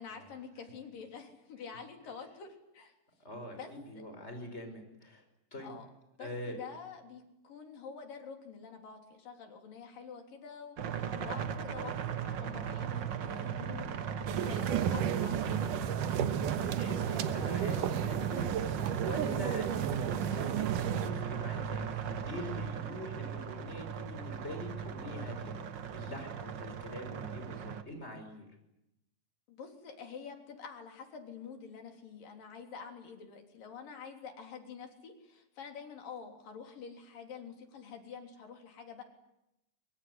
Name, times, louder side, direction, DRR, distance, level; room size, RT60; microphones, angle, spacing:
voice 1, 0.0-2.9 3.6-3.7 5.6-5.9 6.2-13.9 14.4-16.0 29.5-39.0, left 6 dB, 85° left, 4 dB, 5.1 m, -47 dB
voice 2, 3.2-5.2 5.5-5.7 6.2-6.6 16.3-18.7 18.9-25.6 25.9-28.5, equal, 20° left, 5 dB, 5.8 m, -44 dB
sound 1, 10.8-27.8, right 8 dB, 60° right, 1.2 m, -37 dB
sound 2, 14.3-21.1, right 9 dB, 75° right, 2.7 m, -33 dB
24.0 x 23.5 x 9.6 m, 0.87 s
omnidirectional pair, 3.8 m